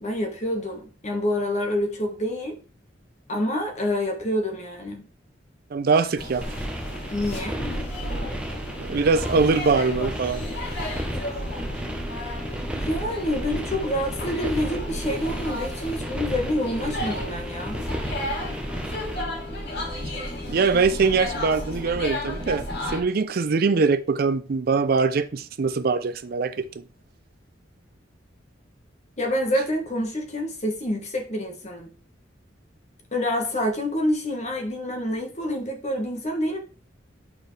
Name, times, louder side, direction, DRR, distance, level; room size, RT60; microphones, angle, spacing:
voice 1, 0.0-2.6 3.3-5.0 7.1-7.6 12.7-17.8 29.2-31.9 33.1-36.6, left 1 dB, 35° left, 1.3 m, -27 dB
voice 2, 5.7-6.4 8.8-10.4 20.5-26.7, right 4 dB, 50° right, 0.4 m, -22 dB
sound 1, 6.2-23.0, left 1 dB, 60° left, 2.6 m, -33 dB
sound 2, 6.4-19.2, equal, 5° right, 0.7 m, -34 dB
8.8 x 4.6 x 3.2 m
head